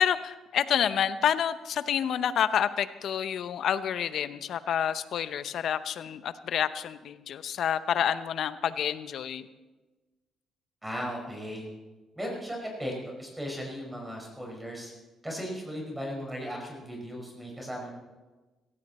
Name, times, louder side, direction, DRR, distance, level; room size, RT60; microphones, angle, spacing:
voice 1, 0.0-9.5, left 9 dB, 70° left, 13 dB, 0.8 m, -28 dB
voice 2, 10.8-11.7 12.1-14.9 15.2-17.9, equal, 10° right, 0 dB, 5.4 m, -36 dB
17.0 x 15.0 x 4.3 m, 1.2 s
cardioid pair, 90°, 0 cm